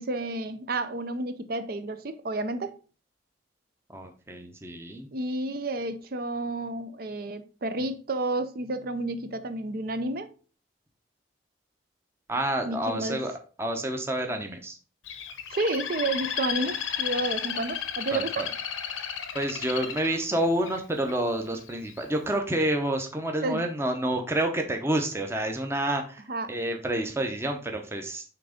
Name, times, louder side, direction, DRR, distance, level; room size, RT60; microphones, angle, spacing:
voice 1, 0.0-2.7 5.1-10.3 12.6-13.2 15.5-18.5 23.4-23.6 26.3-26.5, right 2 dB, 50° right, 0.5 m, -31 dB
voice 2, 3.9-5.1 12.3-13.3 13.6-14.8 18.1-18.5 19.3-28.2, right 1 dB, 15° right, 0.7 m, -29 dB
Bird, 15.1-21.1 21.7-22.1, left 8 dB, 90° left, 0.9 m, -33 dB
5.9 x 3.4 x 5.0 m
head